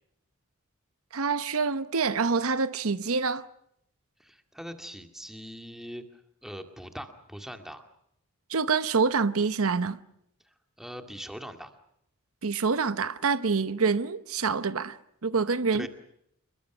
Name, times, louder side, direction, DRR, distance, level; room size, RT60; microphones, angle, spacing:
voice 1, 1.1-3.5 8.5-10.0 12.4-15.9, right 4 dB, 70° right, 0.9 m, -26 dB
voice 2, 4.2-7.8 10.4-11.7 15.7-15.9, equal, ahead, 2.2 m, -42 dB
28.5 x 22.5 x 6.1 m
head